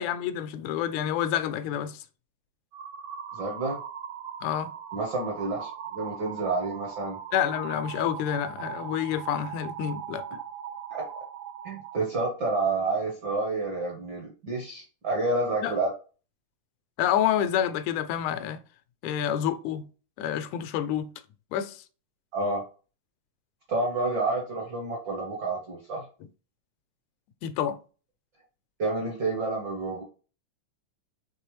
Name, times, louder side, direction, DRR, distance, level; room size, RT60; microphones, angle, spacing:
voice 1, 0.0-2.0 4.4-4.7 7.3-10.2 15.6-15.7 17.0-18.6 19.0-19.9 20.2-21.1 21.5-21.8 27.4-27.8, left 10 dB, 85° left, 2.0 m, -28 dB
sound 1, 2.7-12.0, right 8 dB, 85° right, 1.2 m, -39 dB
voice 2, 3.3-3.8 4.9-7.2 10.9-11.1 11.6-15.9 22.3-22.6 23.7-26.1 28.8-30.0, right 3 dB, 65° right, 1.1 m, -29 dB
5.2 x 3.3 x 3.0 m
omnidirectional pair, 3.3 m